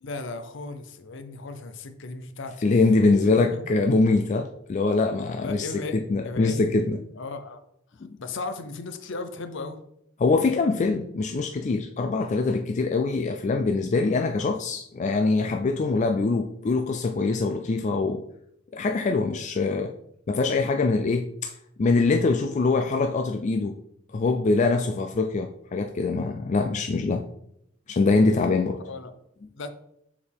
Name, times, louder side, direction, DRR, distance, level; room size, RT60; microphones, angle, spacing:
voice 1, 0.0-2.6 3.4-3.6 5.3-6.0 6.2-6.7 7.1-7.6 7.9-9.8 28.8-29.1 29.5-29.7, left 3 dB, 60° left, 9 dB, 0.7 m, -36 dB
voice 2, 2.6-5.7 5.9-7.0 8.1-8.2 10.2-18.2 18.7-19.9 20.3-21.5 21.8-23.7 24.1-27.2 27.9-28.8, left 3 dB, 35° left, 5 dB, 0.3 m, -23 dB
6.6 x 4.8 x 3.5 m, 0.75 s
head